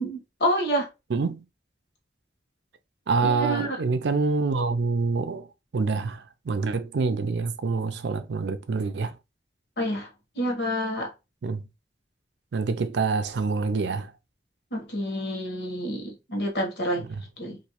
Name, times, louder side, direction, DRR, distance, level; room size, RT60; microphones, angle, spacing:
voice 1, 0.0-0.9 3.2-3.8 9.8-10.1 10.4-11.1 14.7-17.1 17.4-17.6, equal, 75° left, 1.2 m, -28 dB
voice 2, 1.1-1.4 3.1-5.5 5.7-9.1 11.4-11.6 12.5-14.1 17.0-17.2, right 4 dB, 85° right, 0.5 m, -26 dB
3.0 x 2.7 x 2.9 m
head